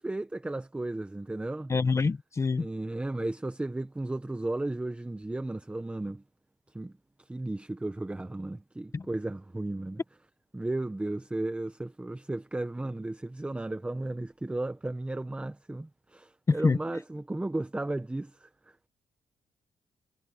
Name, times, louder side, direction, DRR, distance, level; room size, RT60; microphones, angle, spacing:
voice 1, 0.0-1.7 2.6-6.2 6.7-6.9 7.3-10.0 10.5-18.9, right 2 dB, 10° right, 0.8 m, -34 dB
voice 2, 1.7-2.7 8.9-9.1 16.5-16.8, left 4 dB, 25° left, 0.9 m, -26 dB
cardioid pair, 120°, 11 cm